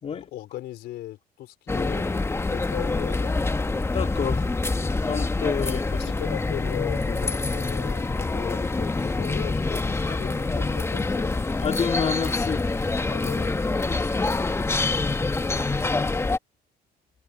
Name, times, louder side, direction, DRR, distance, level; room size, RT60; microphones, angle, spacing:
voice 1, 0.1-2.1 2.4-3.5 5.6-11.4 13.1-13.5, left 14 dB, 80° left, 4.2 m, -37 dB
sound 1, 1.7-16.4, left 3 dB, 15° left, 1.1 m, -26 dB
voice 2, 3.9-4.5 5.0-5.8 10.1-10.4 11.6-12.7 13.9-14.2, left 7 dB, 40° left, 2.2 m, -29 dB
cardioid pair, 110°, 17 cm